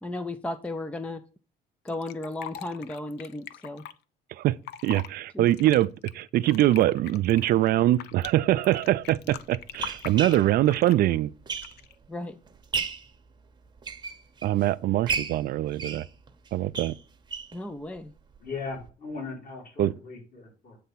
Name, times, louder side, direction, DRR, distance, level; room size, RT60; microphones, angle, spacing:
voice 1, 0.0-1.2 1.8-3.8 5.3-5.5 12.1-12.4 17.5-18.1, left 2 dB, 5° left, 0.4 m, -35 dB
Fill (with liquid), 1.9-3.9 4.5-5.1 5.5-8.3 8.6-11.1 11.6-11.9, left 11 dB, 80° left, 0.5 m, -42 dB
voice 2, 4.8-5.9 6.1-11.3 14.4-16.0 16.5-16.9 19.8-19.9, right 14 dB, 65° right, 0.4 m, -23 dB
sound 1, 8.2-8.3 9.1-12.1 12.5-13.1 13.6-14.6 15.1-17.6 18.0-18.1 18.3-18.4 18.8-18.9, right 5 dB, 25° right, 0.9 m, -34 dB
voice 3, 18.4-20.8, left 4 dB, 55° left, 4.0 m, -38 dB
8.3 x 3.4 x 5.6 m
cardioid pair, 110°, 17 cm